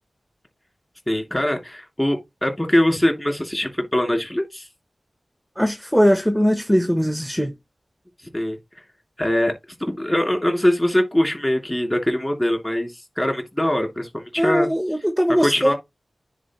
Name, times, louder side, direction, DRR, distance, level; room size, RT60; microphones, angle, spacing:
voice 1, 1.1-4.7 8.3-8.6 9.2-9.5 9.8-14.7 15.4-15.7, left 1 dB, 15° left, 2.9 m, -22 dB
voice 2, 5.6-7.5 14.4-15.7, equal, ahead, 1.0 m, -20 dB
9.9 x 4.5 x 3.1 m
wide cardioid pair, 65°, 0 cm